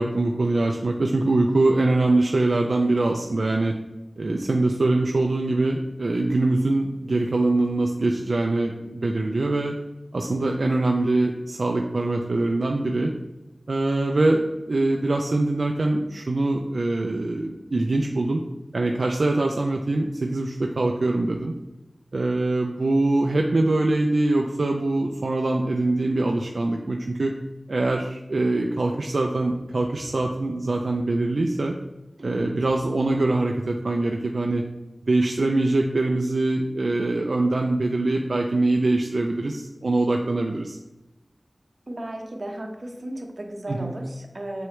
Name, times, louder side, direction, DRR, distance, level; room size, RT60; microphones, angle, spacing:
voice 1, 0.0-3.7 4.2-9.7 10.1-13.1 13.7-18.4 18.7-21.5 22.1-27.3 27.7-31.7 32.2-34.6 35.1-40.8 43.7-43.9, right 2 dB, 75° right, 1 dB, 0.5 m, -23 dB
voice 2, 41.9-44.7, right 1 dB, 55° right, 1 dB, 1.1 m, -35 dB
7.1 x 4.7 x 3.2 m, 1.0 s
wide cardioid pair, 60°, 0 cm